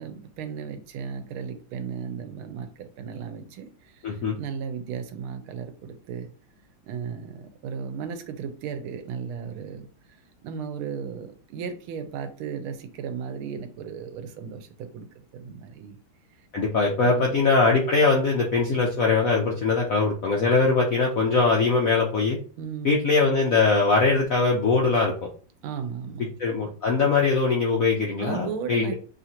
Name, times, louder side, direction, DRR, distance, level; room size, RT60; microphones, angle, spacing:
voice 1, 0.0-6.3 6.8-9.9 10.4-15.1 15.3-16.0 16.3-16.5 17.0-17.4 22.6-23.0 25.6-26.3 28.2-28.9, right 7 dB, 90° right, 8 dB, 1.5 m, -35 dB
voice 2, 4.0-4.4 16.5-22.4 22.8-25.1 26.4-28.9, left 4 dB, 75° left, 0 dB, 0.7 m, -21 dB
6.2 x 2.5 x 2.8 m, 0.40 s
omnidirectional pair, 2.3 m